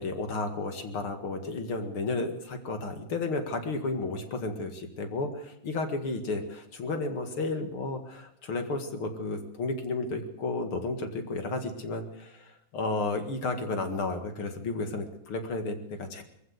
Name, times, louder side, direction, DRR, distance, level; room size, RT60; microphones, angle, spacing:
voice 1, 0.0-16.2, left 3 dB, 50° left, 6 dB, 2.6 m, -32 dB
22.0 x 15.0 x 8.0 m, 0.77 s
omnidirectional pair, 3.4 m